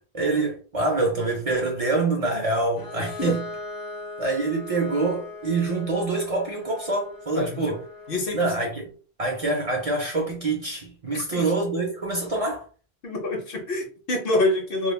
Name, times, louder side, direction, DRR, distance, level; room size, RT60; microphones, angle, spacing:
voice 1, 0.0-3.4 4.2-7.8 8.3-8.9 9.2-12.7, right 3 dB, 45° right, 0.6 m, -26 dB
Bowed string instrument, 2.8-8.4, left 3 dB, 30° left, 0.4 m, -39 dB
voice 2, 7.3-7.8 8.1-8.5 11.1-11.5 13.0-14.9, left 2 dB, 65° left, 0.8 m, -26 dB
2.3 x 2.1 x 3.1 m
omnidirectional pair, 1.0 m